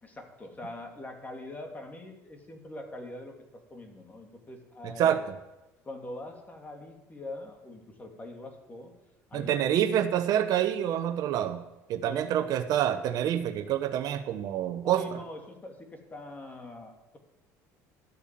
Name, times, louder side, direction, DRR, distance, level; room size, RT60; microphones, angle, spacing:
voice 1, 0.0-5.2 5.8-8.9 9.3-9.6 10.0-10.1 12.0-12.3 14.8-17.2, left 1 dB, 20° left, 3 dB, 2.6 m, -43 dB
voice 2, 9.3-11.6 11.9-15.0, right 10 dB, 60° right, 9 dB, 1.1 m, -27 dB
12.5 x 8.2 x 7.6 m, 0.97 s
supercardioid pair, 100°, 7 cm